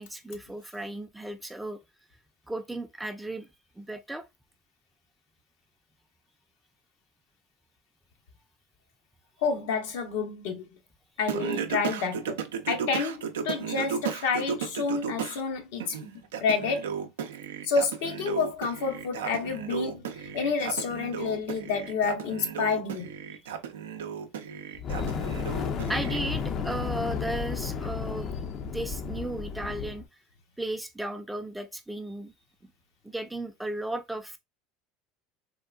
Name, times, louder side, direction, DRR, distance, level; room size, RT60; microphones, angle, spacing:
voice 1, 0.0-1.8 2.5-3.5 3.8-4.2 25.0-25.3 25.9-28.3 28.6-30.0 30.6-32.3 33.0-34.4, right 1 dB, 5° right, 0.4 m, -35 dB
voice 2, 9.4-10.7 11.2-16.9 17.6-23.1, left 5 dB, 75° left, 0.8 m, -29 dB
Singing, 11.3-15.4 15.8-26.2, right 7 dB, 90° right, 0.4 m, -35 dB
Fire, 24.8-30.0, left 6 dB, 50° left, 0.5 m, -32 dB
3.6 x 2.3 x 2.3 m
hypercardioid pair, 90°, 0 cm